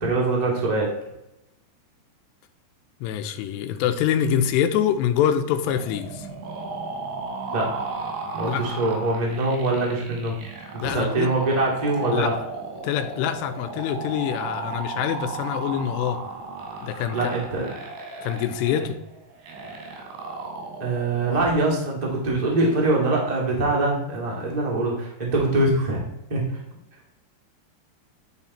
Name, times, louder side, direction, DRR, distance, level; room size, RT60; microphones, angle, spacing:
voice 1, 0.0-0.9 7.5-7.7 8.3-10.3 10.8-12.3 17.1-17.7 18.8-18.9 20.8-26.4, right 2 dB, 30° right, -3 dB, 0.6 m, -23 dB
voice 2, 3.0-6.3 8.5-8.6 10.8-11.3 12.1-12.3 12.8-16.2 16.8-17.3 18.2-19.0, left 9 dB, 85° left, 9 dB, 2.8 m, -25 dB
sound 1, 5.6-21.6, right 3 dB, 85° right, 4.0 m, -35 dB
10.5 x 4.2 x 4.2 m, 0.87 s
omnidirectional pair, 4.9 m